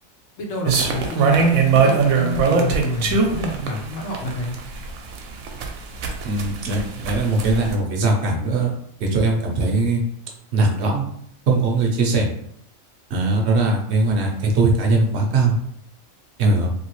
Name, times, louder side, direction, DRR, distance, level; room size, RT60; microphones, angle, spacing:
voice 1, 0.4-4.6, left 1 dB, 70° left, 1 dB, 1.1 m, -29 dB
sound 1, 0.7-7.7, right 5 dB, 85° right, 1.0 m, -20 dB
voice 2, 6.2-8.7 9.0-10.0 10.5-11.0 11.5-12.3 13.1-15.6 16.4-16.7, right 3 dB, 60° right, 0 dB, 0.9 m, -20 dB
3.2 x 2.7 x 3.0 m, 0.71 s
omnidirectional pair, 1.4 m